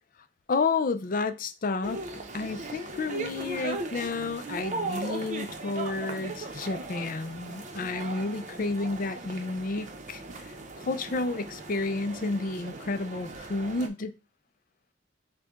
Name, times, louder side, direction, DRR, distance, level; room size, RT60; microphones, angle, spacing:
voice 1, 0.5-2.0 2.3-10.5 10.9-14.2, left 3 dB, 45° left, 0.5 m, -31 dB
sound 1, 1.8-13.9, right 3 dB, 40° right, 0.7 m, -38 dB
6.6 x 2.2 x 3.6 m
head